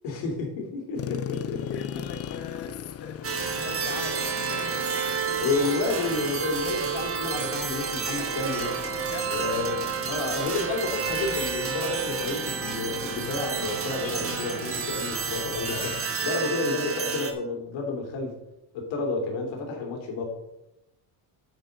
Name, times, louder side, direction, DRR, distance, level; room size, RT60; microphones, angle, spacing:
voice 1, 0.0-2.0 5.4-8.8 9.3-18.4 18.7-20.2, left 3 dB, 80° left, 1 dB, 2.8 m, -30 dB
sound 1, 0.9-16.0, left 9 dB, 35° left, 0.5 m, -40 dB
voice 2, 1.7-5.4 9.1-9.6 16.2-16.6, left 6 dB, 60° left, 5 dB, 1.5 m, -42 dB
sound 2, 3.2-17.3, right 6 dB, 30° right, 1.3 m, -30 dB
8.5 x 7.9 x 3.9 m, 0.89 s
cardioid pair, 120°, 45 cm